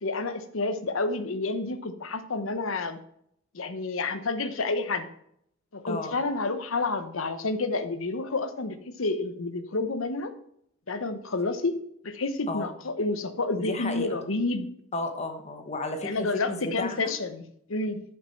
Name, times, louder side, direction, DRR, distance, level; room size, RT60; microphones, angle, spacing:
voice 1, 0.0-3.0 3.5-5.1 5.7-10.3 10.9-11.8 12.0-14.7 16.0-18.0, left 3 dB, 85° left, 10 dB, 1.0 m, -29 dB
voice 2, 5.9-6.2 12.5-12.7 13.6-14.1 14.9-17.1, left 2 dB, 35° left, 5 dB, 1.2 m, -33 dB
10.5 x 5.8 x 5.8 m, 0.71 s
head